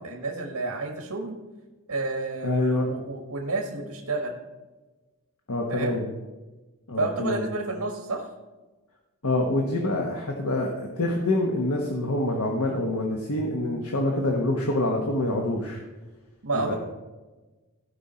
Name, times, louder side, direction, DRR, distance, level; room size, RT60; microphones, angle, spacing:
voice 1, 0.0-1.4 1.9-4.4 5.7-6.0 7.0-8.3 16.4-16.7, right 3 dB, 80° right, 1 dB, 1.4 m, -30 dB
voice 2, 2.4-2.9 5.5-6.1 6.9-7.4 9.2-15.8 16.5-16.7, left 1 dB, 75° left, 0 dB, 1.2 m, -26 dB
16.0 x 5.4 x 4.3 m, 1.2 s
head